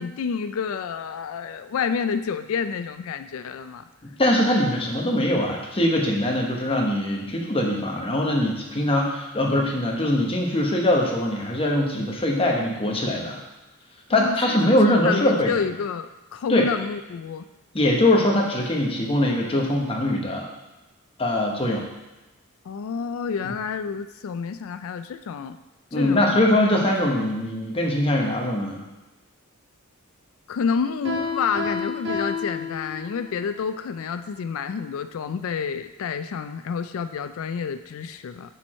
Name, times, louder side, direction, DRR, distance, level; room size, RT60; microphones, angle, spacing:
voice 1, 0.0-3.8 14.1-14.6 14.8-17.5 22.7-25.6 25.9-26.4 30.5-38.6, left 6 dB, 70° left, 10 dB, 0.4 m, -29 dB
voice 2, 4.0-13.4 14.1-15.5 16.5-16.7 17.7-20.5 21.2-21.9 25.9-28.8, left 1 dB, 25° left, -1 dB, 1.1 m, -22 dB
Piano, 31.0-33.3, left 4 dB, 60° right, 1.8 m, -30 dB
7.0 x 4.6 x 4.3 m, 1.1 s
head